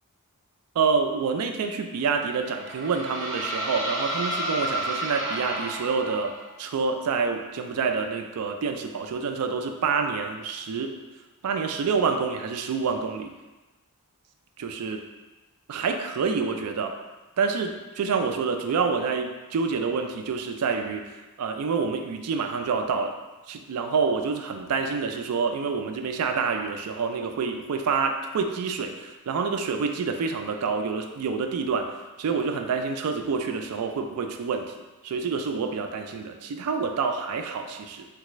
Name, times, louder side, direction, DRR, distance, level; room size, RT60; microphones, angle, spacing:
voice 1, 0.8-11.0 11.4-13.3 14.6-15.0 15.7-16.9 17.4-23.2 23.5-34.7 35.0-38.1, right 5 dB, 90° right, 5 dB, 0.4 m, -27 dB
sound 1, 2.2-6.5, right 1 dB, 20° right, 0.7 m, -31 dB
3.3 x 2.3 x 3.0 m, 1.1 s
head